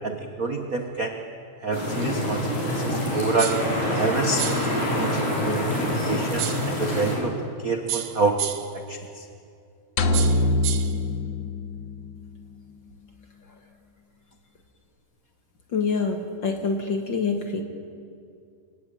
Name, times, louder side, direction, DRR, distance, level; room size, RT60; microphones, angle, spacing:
voice 1, 0.0-1.1 1.6-3.6 4.0-7.3 7.6-8.4 8.7-9.0, right 3 dB, 60° right, 4 dB, 0.9 m, -28 dB
sound 1, 1.7-7.2, left 1 dB, 90° left, 7.7 m, -26 dB
sound 2, 3.4-3.7 4.4-4.7 6.4-6.7 7.9-8.8 10.1-11.0, right 12 dB, 80° right, 2.6 m, -31 dB
sound 3, 10.0-12.2, left 2 dB, 75° left, 1.1 m, -23 dB
voice 2, 15.7-17.6, left 4 dB, 40° left, 3 dB, 2.1 m, -26 dB
26.5 x 18.0 x 8.9 m, 2.4 s
omnidirectional pair, 3.7 m